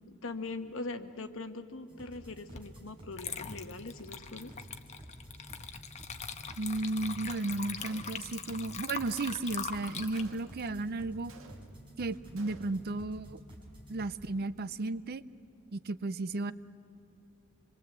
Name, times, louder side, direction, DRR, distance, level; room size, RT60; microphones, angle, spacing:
voice 1, 0.2-4.5, left 3 dB, 70° left, 8 dB, 1.3 m, -41 dB
sound 1, 1.9-14.3, right 1 dB, 25° right, 4.6 m, -51 dB
Water / Liquid, 2.6-2.7 3.1-11.7, left 6 dB, 35° left, 1.1 m, -42 dB
voice 2, 6.6-11.3 12.0-13.4 13.9-15.2 15.7-16.5, right 2 dB, 50° right, 16 dB, 0.6 m, -34 dB
Gunshot gunfire, 7.8-8.5 9.1-9.6 10.1-10.8 11.3-12.0 12.4-12.9, right 4 dB, 80° right, 1.8 m, -56 dB
26.5 x 23.0 x 8.2 m, 2.7 s
head